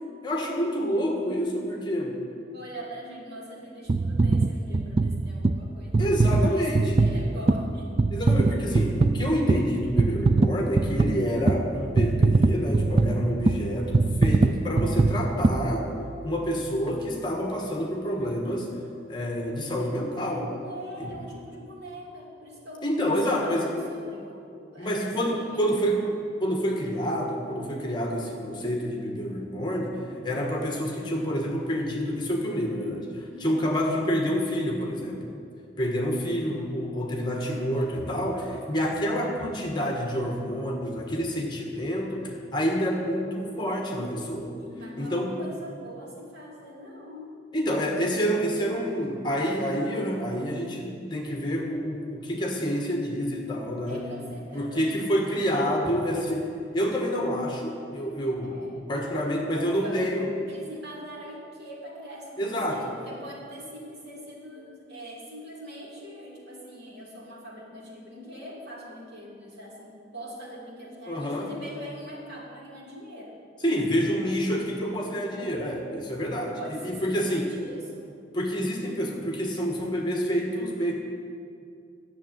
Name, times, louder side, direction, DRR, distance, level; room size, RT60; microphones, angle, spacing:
voice 1, 0.2-2.2 6.0-7.1 8.1-15.9 16.2-18.7 19.1-20.4 21.0-21.1 22.8-23.7 24.8-26.1 26.4-35.3 35.8-44.6 45.0-45.4 47.5-54.0 54.5-60.3 62.4-62.8 71.1-71.5 73.6-77.5 78.3-80.9, equal, 25° left, 0 dB, 1.4 m, -28 dB
voice 2, 2.5-7.9 20.3-25.7 33.3-33.7 44.6-47.4 53.8-55.5 58.4-58.7 59.5-60.0 60.5-73.4 76.6-78.1, equal, 70° right, -3 dB, 2.9 m, -42 dB
sound 1, 3.9-16.3 16.9-17.0, right 3 dB, 30° right, 0.3 m, -23 dB
11.0 x 7.1 x 9.0 m, 2.4 s
head